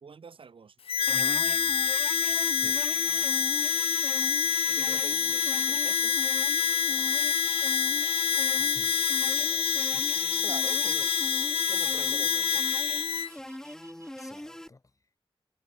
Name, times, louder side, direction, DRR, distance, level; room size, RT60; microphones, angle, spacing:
voice 1, 0.0-0.7 4.7-6.2 10.4-11.1 11.7-12.6, right 5 dB, 70° right, 1.3 m, -45 dB
Harmonica, 0.9-13.3, left 7 dB, 85° left, 0.5 m, -27 dB
sound 1, 1.1-14.7, left 1 dB, 5° left, 0.5 m, -41 dB
voice 2, 2.5-2.9 8.6-10.1 14.2-14.8, left 3 dB, 35° left, 2.5 m, -52 dB
sound 2, 3.3-14.4, right 2 dB, 30° right, 4.4 m, -48 dB
wide cardioid pair, 110°, 9 cm